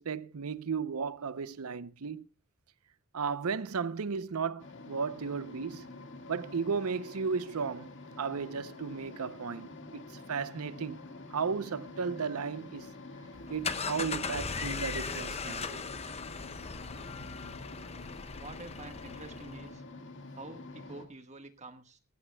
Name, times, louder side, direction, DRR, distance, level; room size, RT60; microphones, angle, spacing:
voice 1, 0.0-2.2 3.1-5.8 6.3-7.9 8.2-10.0 10.3-11.0 11.3-12.9 13.5-15.8, right 5 dB, 80° right, 0.6 m, -34 dB
sound 1, 4.6-21.1, left 2 dB, 55° left, 1.8 m, -47 dB
sound 2, 13.3-19.7, left 5 dB, 30° left, 0.8 m, -38 dB
voice 2, 18.4-19.8 20.3-22.0, right 2 dB, 30° right, 1.4 m, -48 dB
19.0 x 15.0 x 2.2 m
head